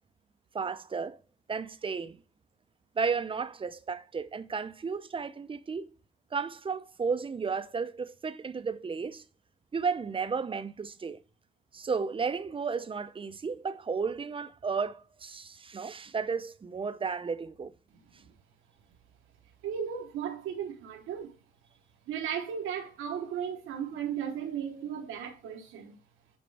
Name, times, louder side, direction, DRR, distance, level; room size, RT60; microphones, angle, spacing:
voice 1, 0.5-1.2 1.5-2.2 3.0-5.9 6.3-9.2 9.7-11.2 11.7-17.7, right 5 dB, 25° right, 0.5 m, -33 dB
voice 2, 19.6-21.3 22.1-26.0, right 8 dB, 90° right, 1.1 m, -35 dB
7.7 x 4.4 x 3.3 m
cardioid pair, 90°, 20 cm